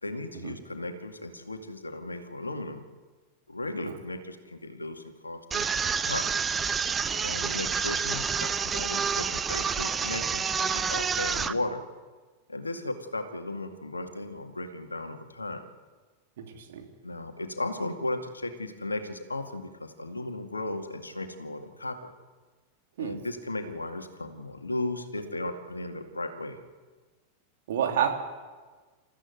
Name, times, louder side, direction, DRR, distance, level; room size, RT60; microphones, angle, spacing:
voice 1, 0.0-2.8 3.5-5.7 5.9-6.3 7.2-11.8 12.5-15.6 17.0-22.1 23.0-26.6, left 2 dB, 80° left, 6 dB, 2.2 m, -35 dB
sound 1, 5.5-11.5, right 6 dB, 20° right, 0.8 m, -28 dB
voice 2, 16.4-16.9 23.0-23.1 27.7-28.2, right 9 dB, 60° right, 2 dB, 3.3 m, -29 dB
28.5 x 15.0 x 8.0 m, 1.4 s
figure-of-eight pair, 90°, 0 cm